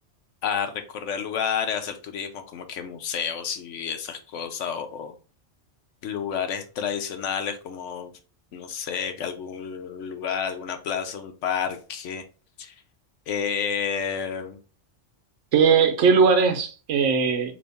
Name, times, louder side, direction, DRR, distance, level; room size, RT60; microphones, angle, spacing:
voice 1, 0.4-5.1 6.0-8.1 8.5-12.2 12.6-12.7 13.3-14.6, left 7 dB, 80° left, 1.0 m, -30 dB
voice 2, 15.5-17.5, right 5 dB, 80° right, 1.1 m, -19 dB
4.0 x 3.0 x 3.4 m
omnidirectional pair, 1.2 m